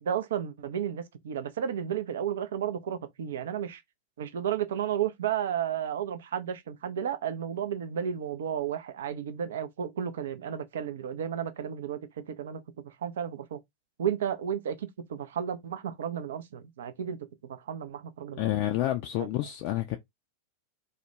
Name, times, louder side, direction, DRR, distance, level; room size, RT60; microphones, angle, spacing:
voice 1, 0.0-3.8 4.2-13.6 14.0-18.5 19.2-19.3, right 9 dB, 60° right, 0.4 m, -33 dB
voice 2, 18.4-20.0, left 14 dB, 45° left, 0.3 m, -29 dB
2.3 x 2.1 x 2.9 m
figure-of-eight pair, 90°, 0 cm